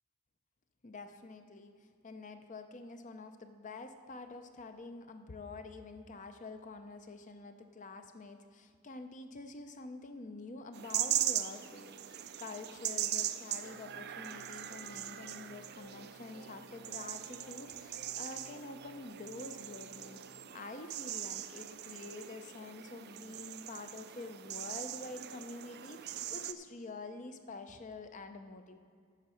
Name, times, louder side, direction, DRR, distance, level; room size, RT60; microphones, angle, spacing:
voice 1, 0.8-28.8, left 3 dB, 35° left, 7 dB, 0.6 m, -47 dB
sound 1, 10.7-26.5, right 12 dB, 45° right, 0.4 m, -40 dB
Singing, 13.6-20.4, equal, 75° left, 1.9 m, -57 dB
9.9 x 7.2 x 6.4 m, 2.2 s
head